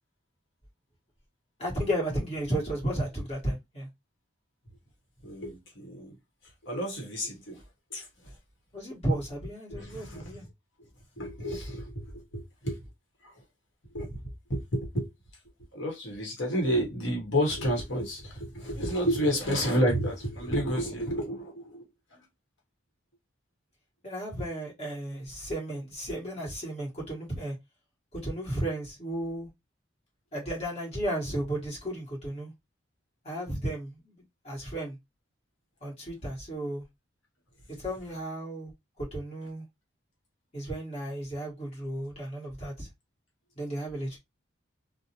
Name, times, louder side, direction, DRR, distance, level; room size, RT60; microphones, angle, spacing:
voice 1, 1.6-3.9 8.7-10.4 24.0-27.5 28.1-29.5 30.3-32.5 33.2-34.1 34.4-35.0 35.8-36.8 37.8-38.7 39.0-39.6 40.5-42.9 43.6-44.2, right 1 dB, 30° left, 1.3 m, -33 dB
voice 2, 5.2-6.1 6.6-7.6 7.9-8.1 9.7-10.3 11.2-12.8 13.2-13.3 13.9-14.1 14.5-15.1 15.7-21.9 22.1-22.2, equal, 70° left, 1.0 m, -30 dB
2.6 x 2.1 x 2.8 m
head